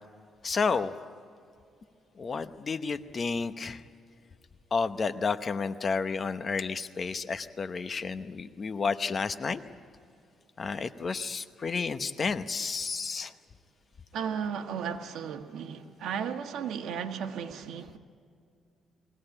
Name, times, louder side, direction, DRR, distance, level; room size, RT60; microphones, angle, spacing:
voice 1, 0.4-0.9 2.2-3.8 4.7-9.6 10.6-13.3, left 5 dB, 35° left, 0.9 m, -31 dB
voice 2, 14.1-18.0, right 7 dB, 75° right, 1.5 m, -35 dB
22.5 x 17.0 x 9.8 m
cardioid pair, 120°, 0 cm